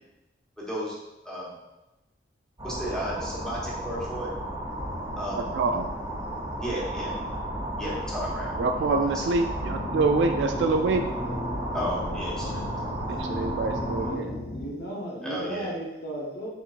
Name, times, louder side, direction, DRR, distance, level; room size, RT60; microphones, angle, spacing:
voice 1, 0.6-1.0 1.2-1.5 2.6-4.3 5.2-5.5 6.6-7.1 7.8-9.2 11.7-12.6 15.2-15.7, equal, 5° left, -6 dB, 1.2 m, -34 dB
sound 1, 2.6-14.2, right 1 dB, 35° right, 1.5 m, -33 dB
voice 2, 5.5-5.8 8.6-11.0 13.1-14.3, right 3 dB, 85° right, 5 dB, 0.3 m, -26 dB
sound 2, 9.6-14.7, left 1 dB, 40° left, 0.6 m, -36 dB
voice 3, 13.6-16.5, right 1 dB, 70° left, -4 dB, 0.9 m, -36 dB
4.5 x 4.0 x 2.4 m, 1.0 s
head